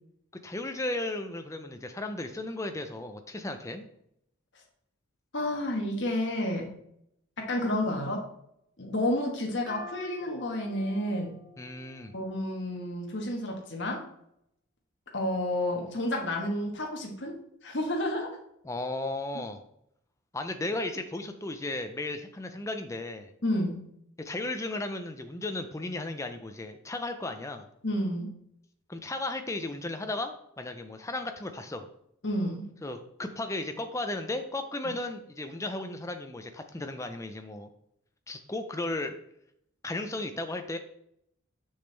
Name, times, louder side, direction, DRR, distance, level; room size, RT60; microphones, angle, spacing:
voice 1, 0.4-3.8 11.6-12.1 18.6-19.6 20.3-23.3 24.2-27.7 28.9-31.9 32.8-37.7 38.3-39.2 39.8-40.8, left 2 dB, 15° left, 7 dB, 0.5 m, -35 dB
voice 2, 5.3-6.7 7.4-8.2 8.8-11.3 12.1-14.0 15.1-17.4 17.6-18.4 19.3-19.4 23.4-23.8 27.8-28.3 32.2-32.6, left 1 dB, 55° left, 0 dB, 1.3 m, -30 dB
sound 1, 9.7-13.2, left 1 dB, 20° right, 1.3 m, -48 dB
6.4 x 6.1 x 3.3 m, 0.74 s
head